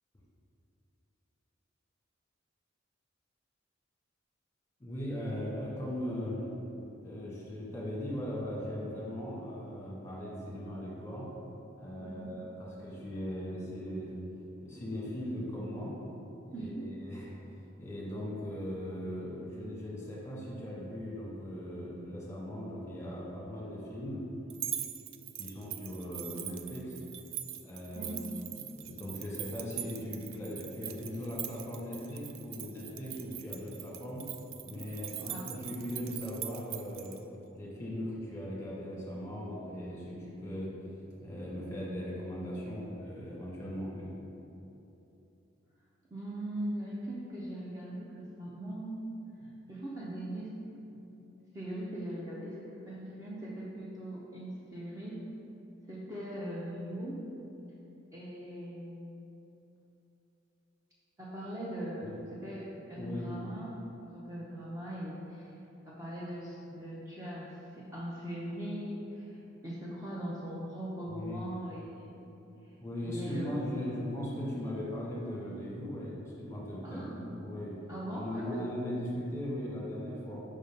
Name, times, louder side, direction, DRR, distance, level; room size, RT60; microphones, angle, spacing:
voice 1, 4.8-6.5 7.0-11.3 11.8-14.1 14.6-15.9 16.5-17.3 17.8-24.2 25.4-27.0 27.6-28.2 28.5-34.2 34.6-37.2 37.5-40.7 41.2-44.1 62.0-62.2 62.9-63.3 71.1-71.5 72.8-77.7 78.2-80.4, equal, 15° left, -5 dB, 1.3 m, -39 dB
voice 2, 12.0-12.3 16.5-17.0 27.9-28.3 35.3-35.4 46.1-49.0 49.7-50.5 51.5-55.3 55.9-57.3 58.1-59.1 61.2-65.5 65.8-72.3 72.6-72.8 73.0-73.8 76.8-77.3 77.9-78.6, right 1 dB, 15° right, -7 dB, 0.6 m, -40 dB
sound 1, 24.5-37.2, right 11 dB, 70° right, 0.3 m, -42 dB
5.1 x 3.9 x 5.3 m, 2.9 s
head